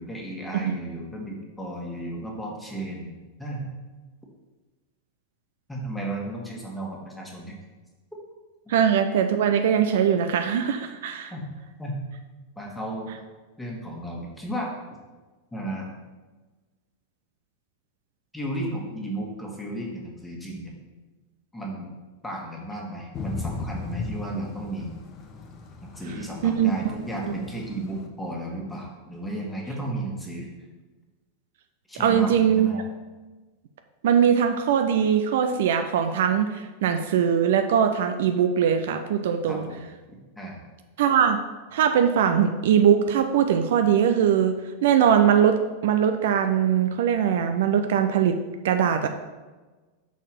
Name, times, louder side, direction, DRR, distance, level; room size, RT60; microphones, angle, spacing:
voice 1, 0.0-3.1 3.4-3.7 5.7-7.6 8.6-8.7 11.3-11.4 11.8-12.0 12.5-13.1 13.6-14.7 15.5-15.9 18.3-20.7 21.5-21.9 22.2-25.0 25.8-30.5 31.9-32.8 39.5-39.9 40.3-40.6, right 1 dB, 5° left, -2 dB, 1.7 m, -34 dB
voice 2, 8.7-11.3 26.4-26.8 27.2-27.3 32.0-32.8 34.0-39.7 41.0-41.4 41.7-44.5 44.8-48.4 48.6-49.1, right 8 dB, 55° right, 7 dB, 0.4 m, -21 dB
Thunder / Rain, 23.1-28.1, left 3 dB, 30° left, 0.9 m, -37 dB
5.7 x 4.5 x 6.0 m, 1.2 s
figure-of-eight pair, 90°, 0 cm